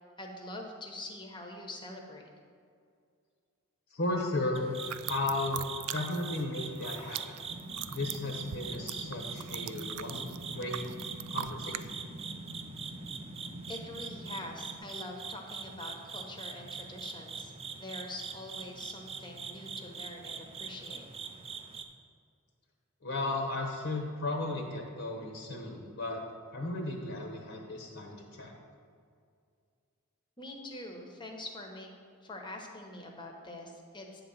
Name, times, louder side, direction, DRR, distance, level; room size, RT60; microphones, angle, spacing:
voice 1, 0.2-2.3 13.7-17.5 17.8-21.1 30.4-31.9 32.2-34.2, left 1 dB, 20° left, 2 dB, 1.0 m, -44 dB
voice 2, 3.9-4.8 5.1-7.4 7.9-10.8 11.3-11.9 23.0-26.2 26.5-28.5, left 2 dB, 60° left, 1 dB, 1.0 m, -35 dB
sound 1, 4.5-21.8, right 6 dB, 25° right, 0.5 m, -43 dB
sound 2, 4.8-6.4 6.7-11.9, right 12 dB, 90° right, 0.3 m, -41 dB
sound 3, 7.4-14.8, right 1 dB, 55° right, 0.9 m, -46 dB
9.2 x 3.9 x 7.1 m, 2.3 s
head